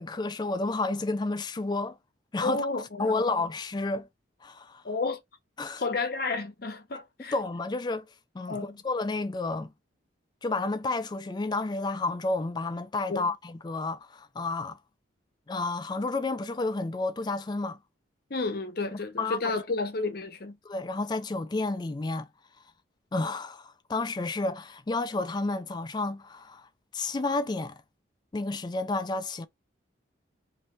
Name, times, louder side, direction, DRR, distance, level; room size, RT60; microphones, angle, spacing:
voice 1, 0.0-2.0 2.3-2.7 3.0-4.1 4.4-4.8 5.6-5.8 7.3-8.1 8.3-9.7 10.4-14.8 15.5-17.8 18.9-19.4 20.7-22.3 23.1-26.7 26.9-27.8 28.3-29.5, left 3 dB, 20° left, 0.3 m, -31 dB
voice 2, 2.4-3.4 4.8-5.2 5.8-7.3 8.5-8.8 13.1-13.3 18.3-20.6, left 3 dB, 50° left, 0.7 m, -31 dB
3.0 x 2.7 x 4.4 m
head